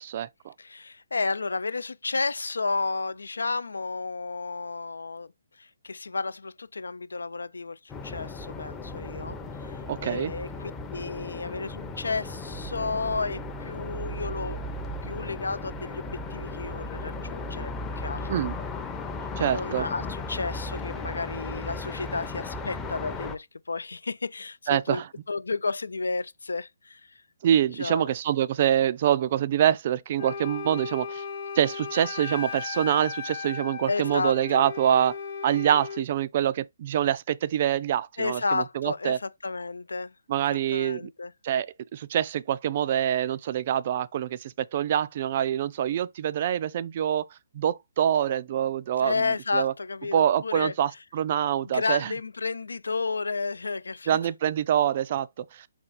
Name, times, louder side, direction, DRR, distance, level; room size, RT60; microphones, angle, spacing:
voice 1, 0.0-0.5 9.9-10.3 18.3-18.6 19.4-19.9 24.7-25.1 27.4-31.2 31.5-35.1 35.4-39.2 40.3-41.1 41.4-41.7 41.9-47.3 47.5-49.3 49.5-49.7 50.1-52.1 54.1-55.7, right 10 dB, 45° right, 0.3 m, -25 dB
voice 2, 0.6-5.3 5.6-14.7 15.0-18.5 19.4-27.2 27.7-28.1 33.9-34.6 38.2-40.4 40.7-41.3 49.0-50.7 51.6-54.2, left 4 dB, 80° left, 0.3 m, -32 dB
sound 1, 7.9-23.4, left 2 dB, 15° left, 0.6 m, -36 dB
Wind instrument woodwind instrument, 30.2-36.1, left 5 dB, 40° left, 0.8 m, -36 dB
4.3 x 2.3 x 4.0 m
figure-of-eight pair, 140°, 0 cm